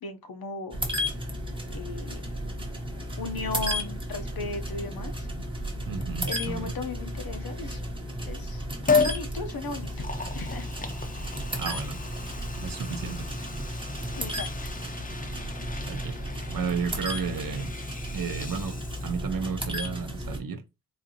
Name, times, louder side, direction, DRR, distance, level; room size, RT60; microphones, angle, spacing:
voice 1, 0.0-0.8 1.7-2.2 3.2-5.3 6.2-7.8 8.2-10.0 10.3-10.7 14.1-14.7, left 4 dB, 65° left, 0.7 m, -36 dB
sound 1, 0.7-20.4, equal, 15° right, 0.7 m, -34 dB
voice 2, 5.9-6.7 11.6-12.0 12.6-13.5 15.9-16.2 16.5-17.7 18.1-20.6, right 5 dB, 60° right, 0.6 m, -33 dB
Liquid, 8.9-9.2 9.8-19.4 19.8-19.9, left 4 dB, 20° left, 0.5 m, -33 dB
4.1 x 2.5 x 2.7 m
wide cardioid pair, 145°, 38 cm